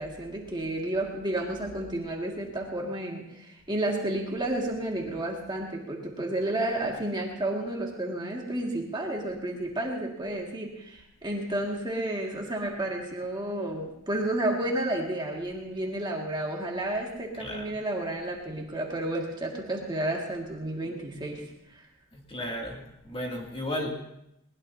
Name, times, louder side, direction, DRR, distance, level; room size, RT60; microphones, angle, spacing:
voice 1, 0.0-21.8, right 1 dB, 20° right, -1 dB, 2.1 m, -31 dB
voice 2, 17.4-17.7 22.1-23.9, left 1 dB, 25° left, -1 dB, 2.5 m, -34 dB
22.0 x 20.0 x 2.8 m, 0.81 s
head